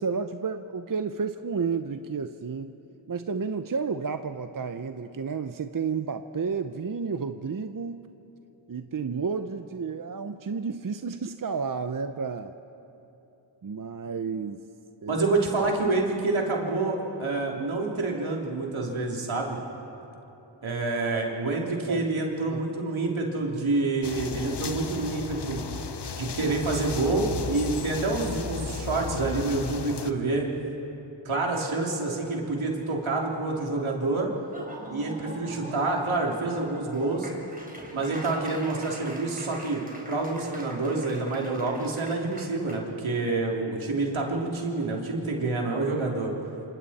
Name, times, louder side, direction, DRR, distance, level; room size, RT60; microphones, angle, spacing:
voice 1, 0.0-2.7 3.1-8.0 8.7-12.5 13.6-14.7 15.0-15.3 21.9-22.0 22.5-22.6, right 5 dB, 45° right, 9 dB, 0.8 m, -31 dB
voice 2, 15.1-19.6 20.6-25.6 26.2-30.5 31.2-34.3 34.9-37.3 37.9-46.3, right 3 dB, 80° right, -1 dB, 3.2 m, -27 dB
sound 1, 24.0-30.1, left 5 dB, 55° left, 1.0 m, -35 dB
Laughter / Applause, 34.4-42.8, right 1 dB, 20° right, 3.9 m, -43 dB
27.0 x 26.5 x 4.3 m, 3.0 s
cardioid pair, 45°, 47 cm